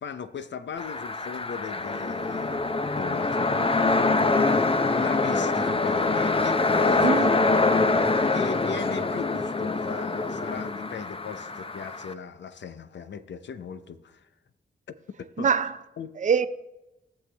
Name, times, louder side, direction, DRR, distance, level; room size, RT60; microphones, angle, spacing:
voice 1, 0.0-14.3 15.2-15.5 16.0-16.1, left 6 dB, 70° left, 0.7 m, -38 dB
sound 1, 0.8-12.1, left 3 dB, 30° left, 0.7 m, -24 dB
voice 2, 6.9-7.3 15.4-15.8 16.2-16.5, right 6 dB, 40° right, 0.5 m, -23 dB
17.0 x 6.3 x 3.4 m
cardioid pair, 45°, 19 cm